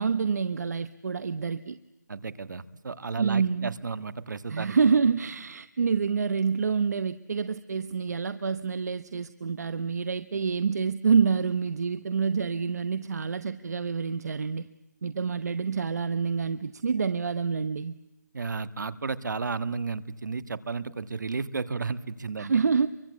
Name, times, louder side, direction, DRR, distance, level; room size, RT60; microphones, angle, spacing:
voice 1, 0.0-1.8 3.2-3.7 4.5-14.7 15.0-17.9 22.4-22.9, right 5 dB, 60° right, 13 dB, 0.8 m, -27 dB
voice 2, 2.1-4.8 18.3-22.6, right 4 dB, 75° right, 15 dB, 1.5 m, -33 dB
27.0 x 23.5 x 8.4 m, 0.99 s
hypercardioid pair, 170°, 10 cm